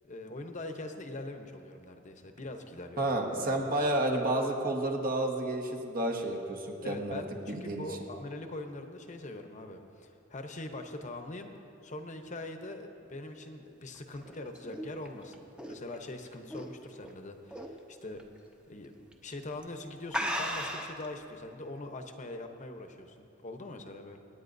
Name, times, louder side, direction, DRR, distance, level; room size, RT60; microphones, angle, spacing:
voice 1, 0.1-3.0 3.4-3.8 6.8-11.5 11.8-15.4 15.7-18.2 18.7-24.2, left 2 dB, 40° left, 5 dB, 0.9 m, -42 dB
voice 2, 3.0-7.9, right 1 dB, 50° right, 2 dB, 1.4 m, -31 dB
sound 1, 14.0-17.1 17.5-17.8 18.2-18.3 19.1-19.3 19.6-19.7 20.1-21.0, equal, 5° right, 0.8 m, -36 dB
26.0 x 9.6 x 2.7 m, 2.8 s
head